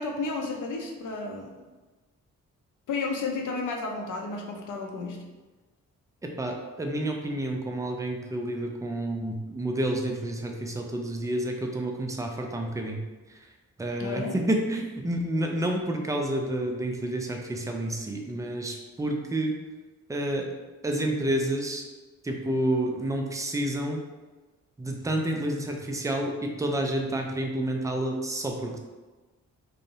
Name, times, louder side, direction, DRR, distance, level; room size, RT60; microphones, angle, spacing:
voice 1, 0.0-1.6 2.9-5.3 14.0-14.4, left 3 dB, 55° left, 2 dB, 0.6 m, -32 dB
voice 2, 6.2-13.0 13.8-19.6 20.1-20.5 20.8-21.8 22.2-24.0 24.8-28.8, right 1 dB, 10° right, 2 dB, 0.4 m, -29 dB
2.5 x 2.0 x 2.8 m, 1.2 s
hypercardioid pair, 40°, 37 cm